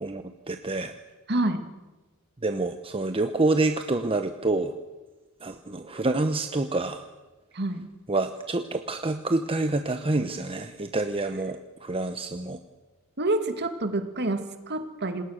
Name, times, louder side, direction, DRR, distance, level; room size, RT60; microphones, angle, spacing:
voice 1, 0.0-0.9 2.4-4.7 5.4-7.0 8.1-12.6, right 2 dB, 25° right, 7 dB, 1.0 m, -27 dB
voice 2, 1.3-1.6 7.5-7.9 13.2-15.2, right 2 dB, 50° right, 7 dB, 2.2 m, -28 dB
27.5 x 19.5 x 6.5 m, 1.2 s
head